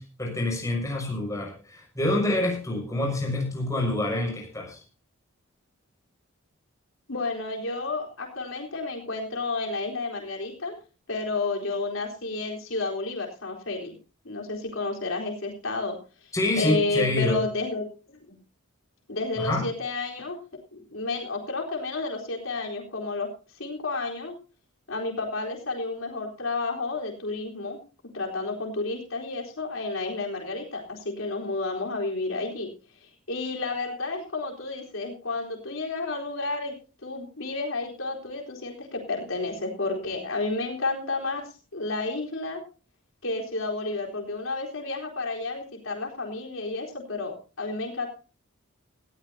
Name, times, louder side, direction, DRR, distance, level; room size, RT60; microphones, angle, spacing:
voice 1, 0.0-4.8 16.3-17.4 19.4-19.6, left 1 dB, 15° left, 0 dB, 6.3 m, -27 dB
voice 2, 7.1-10.8 11.1-13.9 14.2-18.2 19.1-20.4 20.7-23.3 23.5-24.3 24.9-27.8 28.1-32.7 33.0-36.7 37.0-41.4 41.7-42.6 43.2-48.1, left 3 dB, 75° left, 1 dB, 4.0 m, -31 dB
19.0 x 15.0 x 2.8 m, 0.35 s
head